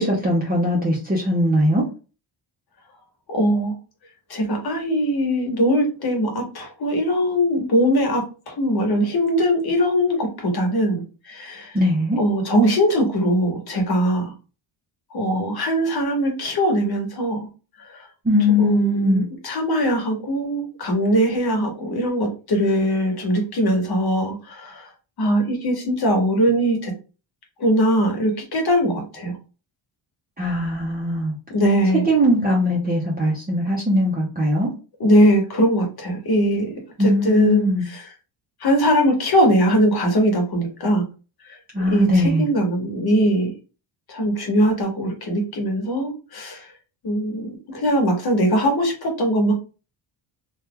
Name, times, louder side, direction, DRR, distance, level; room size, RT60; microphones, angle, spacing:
voice 1, 0.0-1.8 11.7-12.2 18.2-19.2 30.4-31.3 32.0-34.7 37.0-37.8 41.7-42.4, left 1 dB, 20° right, -4 dB, 0.7 m, -20 dB
voice 2, 3.3-3.7 4.3-11.0 11.3-11.7 12.2-14.3 15.1-17.4 18.6-24.7 25.2-26.9 27.6-29.3 31.5-32.0 35.0-36.7 37.2-37.7 38.6-41.0 41.9-43.5 44.1-46.6 47.0-47.5 47.7-49.5, equal, 50° left, 2 dB, 1.2 m, -20 dB
2.9 x 2.3 x 3.6 m, 0.33 s
wide cardioid pair, 145°, 49 cm